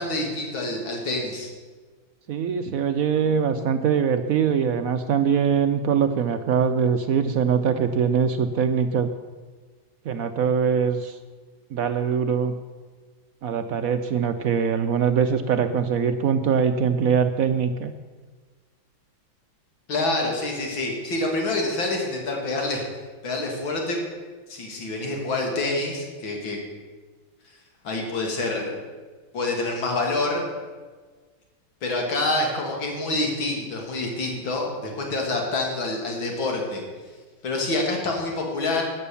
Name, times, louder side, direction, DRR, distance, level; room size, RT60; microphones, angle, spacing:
voice 1, 0.0-1.5 19.9-22.8 23.2-24.0 24.5-26.6 27.8-28.8 29.3-30.4 31.8-36.8 37.4-38.8, left 2 dB, 75° left, 0 dB, 3.0 m, -27 dB
voice 2, 2.3-9.1 10.0-11.2 11.7-12.5 13.4-17.9, right 7 dB, 75° right, 8 dB, 0.8 m, -22 dB
14.0 x 9.7 x 7.0 m, 1.4 s
omnidirectional pair, 2.2 m